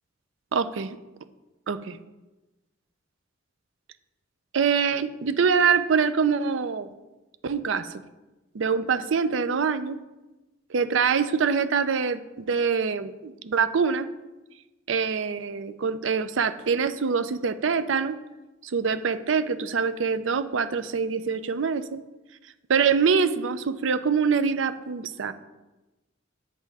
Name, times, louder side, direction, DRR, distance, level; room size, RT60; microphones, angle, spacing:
voice 1, 0.5-1.0 1.7-2.0 4.5-6.9 7.4-7.9 8.5-10.0 10.7-14.1 14.9-18.2 18.6-22.0 22.7-25.3, right 6 dB, 80° right, 12 dB, 0.5 m, -24 dB
8.9 x 5.5 x 4.8 m, 1.1 s
head